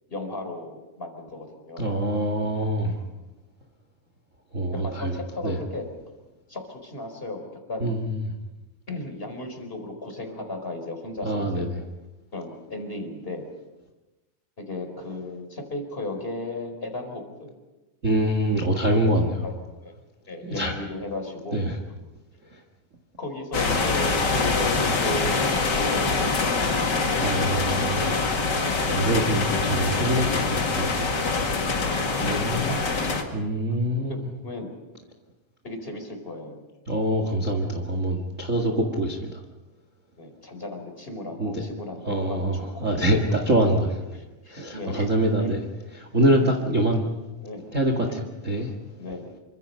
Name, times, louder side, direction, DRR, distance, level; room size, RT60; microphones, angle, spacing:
voice 1, 0.1-1.9 2.8-3.1 4.8-5.9 6.5-7.4 7.7-7.9 8.9-11.7 12.3-13.5 14.6-17.5 19.4-19.5 19.8-19.9 20.3-21.7 23.2-26.8 32.2-33.8 34.1-34.7 35.6-36.6 40.2-42.9 43.7-43.8 44.1-45.1 45.4-45.6 46.4-46.5 47.4-47.6 48.0-48.2 49.0-49.3, left 2 dB, 15° left, 4 dB, 4.4 m, -35 dB
voice 2, 1.8-3.0 4.5-5.6 7.8-8.2 11.2-11.7 18.0-19.5 20.4-20.7 21.5-21.7 27.1-28.2 28.8-30.9 32.2-32.8 33.3-34.2 36.9-39.4 41.4-41.6 42.0-43.9 44.5-45.6 46.0-47.1 47.7-48.7, right 1 dB, 30° right, 3 dB, 1.8 m, -25 dB
sound 1, 23.5-33.2, left 3 dB, 35° left, 2.2 m, -24 dB
28.0 x 24.5 x 5.6 m, 1.1 s
omnidirectional pair, 4.0 m